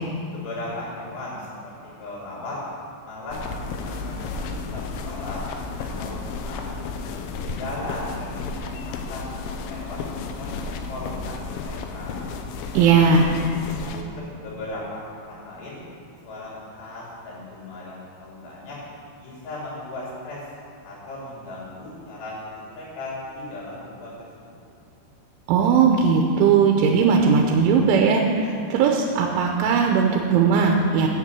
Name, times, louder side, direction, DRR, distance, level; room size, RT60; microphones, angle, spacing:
voice 1, 0.3-1.7 2.0-2.6 3.0-5.4 5.8-6.7 7.0-7.1 7.4-9.3 9.6-10.0 10.4-12.2 12.7-13.4 13.9-14.1 14.4-15.8 16.2-18.8 19.2-20.4 20.8-24.1 24.4-24.6, left 2 dB, 65° left, -5 dB, 4.6 m, -37 dB
sound 1, 3.3-14.0, left 4 dB, 80° left, 3.1 m, -33 dB
voice 2, 12.7-13.3 25.5-31.1, right 5 dB, 85° right, 1 dB, 3.2 m, -18 dB
11.0 x 6.8 x 8.1 m, 2.6 s
omnidirectional pair, 5.5 m